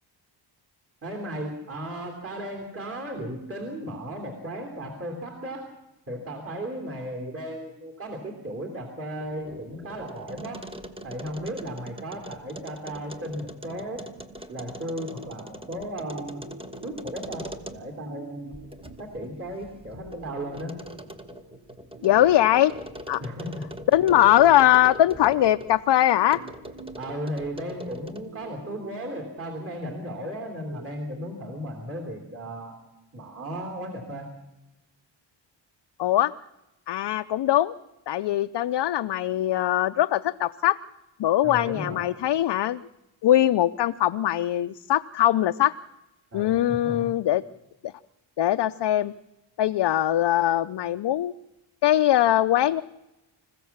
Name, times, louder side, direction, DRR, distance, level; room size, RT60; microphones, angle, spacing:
voice 1, 1.0-5.7 6.1-10.6 11.0-14.1 14.5-16.4 16.8-18.5 19.0-20.8 23.2-23.5 27.0-32.7 33.1-34.3 41.4-42.0 46.3-47.1, equal, 30° right, 2 dB, 3.3 m, -35 dB
sound 1, 9.2-18.1 18.5-25.8 26.3-28.4, equal, 10° right, 1.4 m, -42 dB
sound 2, 15.9-31.9, right 3 dB, 50° right, 7.1 m, -48 dB
voice 2, 22.0-22.7 23.1-23.2 23.9-26.4 36.0-36.3 36.9-37.7 38.1-40.8 41.2-42.8 43.2-45.7 46.3-47.4 48.4-49.1 49.6-51.3 51.8-52.8, left 13 dB, 60° left, 9 dB, 0.6 m, -21 dB
26.5 x 15.5 x 7.3 m, 0.98 s
wide cardioid pair, 135°, 46 cm